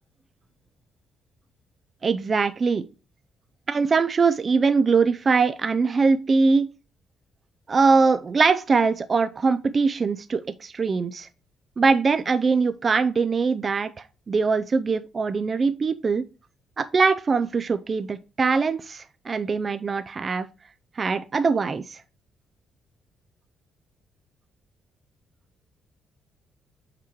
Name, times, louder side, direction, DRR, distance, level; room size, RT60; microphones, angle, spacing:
voice 1, 2.0-2.9 3.7-6.7 7.7-11.3 11.8-13.9 14.3-16.2 16.8-20.5 21.0-22.0, right 4 dB, 40° right, 0.4 m, -22 dB
5.9 x 4.6 x 4.6 m
cardioid pair, 90°, 0 cm